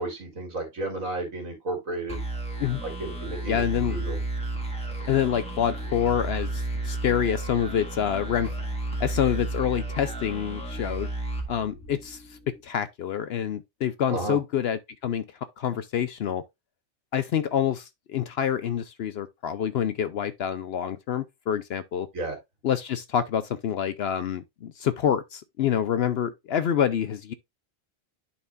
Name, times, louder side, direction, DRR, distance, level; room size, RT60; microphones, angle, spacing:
voice 1, 0.0-2.2 2.8-4.2 14.1-14.4 22.1-22.4, right 2 dB, 85° right, 2.9 m, -32 dB
sound 1, 2.1-12.4, right 2 dB, 5° left, 1.5 m, -32 dB
voice 2, 3.5-4.0 5.1-8.5 9.0-11.1 11.5-15.2 15.6-16.4 17.1-22.1 22.6-27.3, left 9 dB, 65° left, 0.7 m, -27 dB
11.0 x 4.4 x 2.4 m
omnidirectional pair, 1.4 m